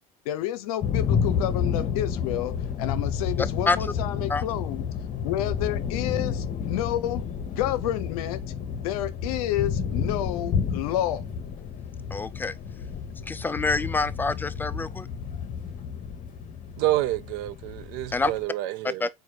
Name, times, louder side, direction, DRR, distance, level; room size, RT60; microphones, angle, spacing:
voice 1, 0.3-4.8 5.2-7.2 7.5-8.4 8.8-11.2, left 13 dB, 75° left, 0.7 m, -30 dB
sound 1, 0.8-18.4, left 7 dB, 40° left, 1.0 m, -30 dB
voice 2, 12.1-12.5 13.3-15.1 18.1-18.3 19.0-19.1, left 3 dB, 10° left, 0.4 m, -26 dB
voice 3, 16.8-19.0, right 15 dB, 60° right, 0.5 m, -28 dB
4.1 x 2.6 x 4.8 m
hypercardioid pair, 85°, 19 cm